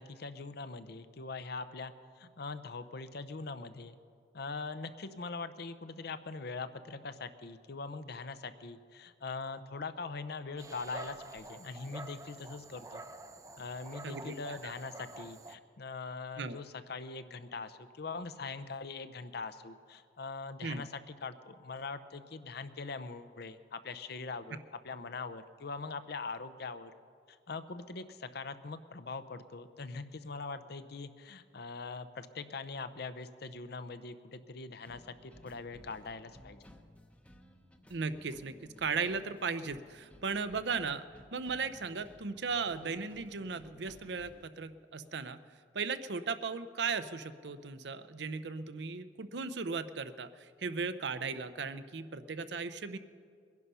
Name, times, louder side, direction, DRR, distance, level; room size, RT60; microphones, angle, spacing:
voice 1, 0.0-4.0 4.3-13.0 13.6-24.6 24.8-26.9 27.3-36.6, left 4 dB, 60° left, 11 dB, 0.7 m, -42 dB
Dog, 10.6-15.6, right 2 dB, 20° right, 0.6 m, -48 dB
voice 2, 14.0-14.7 16.4-16.6 20.6-20.8 37.9-41.0 41.3-45.4 45.7-53.0, right 4 dB, 65° right, 12 dB, 0.7 m, -37 dB
sound 1, 34.9-44.4, equal, 10° left, 0.8 m, -58 dB
21.5 x 11.0 x 5.6 m, 2.1 s
head